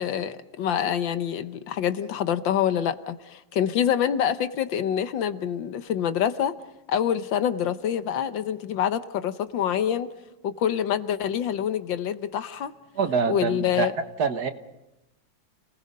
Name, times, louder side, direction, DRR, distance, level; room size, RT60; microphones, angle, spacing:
voice 1, 0.0-6.5 6.9-10.1 10.4-12.7 13.3-13.9, left 9 dB, 80° left, 11 dB, 1.7 m, -26 dB
voice 2, 12.9-13.9 14.2-14.5, right 6 dB, 60° right, 8 dB, 1.7 m, -25 dB
30.0 x 19.5 x 5.4 m, 0.92 s
omnidirectional pair, 2.0 m